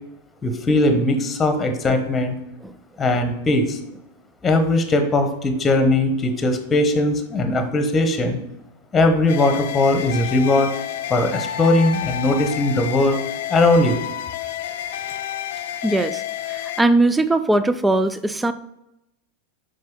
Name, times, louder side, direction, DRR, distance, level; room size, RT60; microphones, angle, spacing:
voice 1, 0.4-2.3 3.0-3.8 4.4-8.4 8.9-10.7 11.1-13.2 13.5-14.0, left 2 dB, 15° left, 7 dB, 1.1 m, -19 dB
sound 1, 9.3-16.8, left 11 dB, 55° left, 0.5 m, -30 dB
voice 2, 15.8-16.2 16.5-18.5, right 2 dB, 10° right, 12 dB, 0.4 m, -19 dB
7.5 x 5.5 x 3.9 m, 0.86 s
figure-of-eight pair, 90°, 0 cm